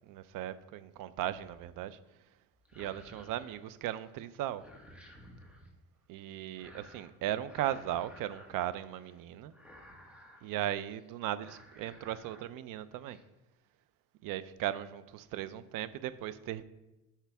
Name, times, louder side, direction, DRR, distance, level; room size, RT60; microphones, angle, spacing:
voice 1, 0.0-2.0 2.7-4.6 6.1-9.5 10.4-13.2 14.2-16.6, right 12 dB, 65° right, 0.6 m, -37 dB
sound 1, 1.3-1.7 2.6-4.1 4.4-5.7 6.6-7.1 7.4-9.2 9.5-10.5 10.9-11.1 11.4-12.4 12.8-13.2, equal, 5° right, 1.3 m, -55 dB
10.0 x 5.8 x 3.5 m
cardioid pair, 125°, 34 cm